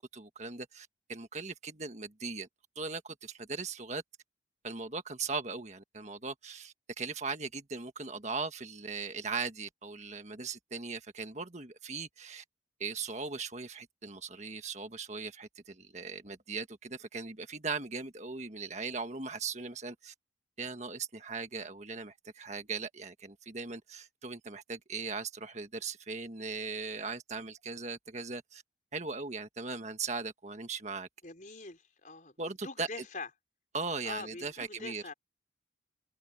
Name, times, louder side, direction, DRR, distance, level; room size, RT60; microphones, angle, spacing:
voice 1, 0.1-2.5 2.8-4.0 4.6-12.4 12.8-20.1 20.6-28.6 28.9-31.1 32.4-32.9 33.7-35.0, right 4 dB, 35° right, 1.6 m, -39 dB
voice 2, 31.2-32.3 32.6-33.3 34.0-35.1, left 3 dB, 45° left, 4.8 m, -43 dB
head